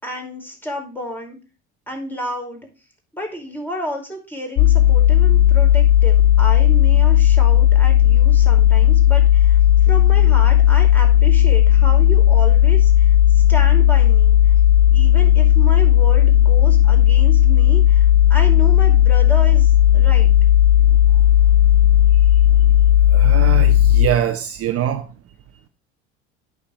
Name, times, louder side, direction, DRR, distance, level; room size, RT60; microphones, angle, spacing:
voice 1, 0.0-1.4 1.9-2.7 3.1-14.4 14.9-20.3, equal, 5° left, 4.9 m, -31 dB
sound 1, 4.6-24.1, left 11 dB, 50° left, 0.7 m, -13 dB
voice 2, 23.1-25.1, right 10 dB, 45° right, 1.0 m, -23 dB
8.6 x 6.9 x 6.1 m
hypercardioid pair, 70°, 33 cm